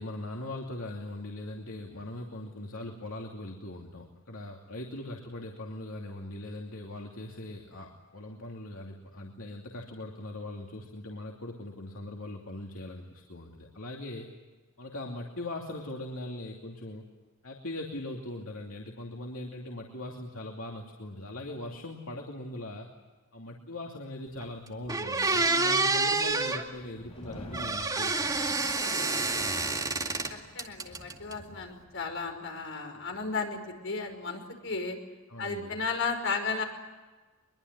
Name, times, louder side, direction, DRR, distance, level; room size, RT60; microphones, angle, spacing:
voice 1, 0.0-14.3 14.8-17.0 17.4-22.9 23.3-28.7 35.3-35.7, left 1 dB, 80° left, 0 dB, 2.7 m, -40 dB
sound 1, 24.4-24.5 24.9-26.6 27.5-30.3 30.6-31.3, right 3 dB, 20° right, 2.2 m, -28 dB
voice 2, 25.3-25.7 28.8-29.9 30.3-35.0 35.4-36.6, left 4 dB, 65° left, 3 dB, 5.5 m, -35 dB
sound 2, 26.9-32.4, equal, 30° left, 6.2 m, -49 dB
23.0 x 23.0 x 9.5 m, 1.3 s
head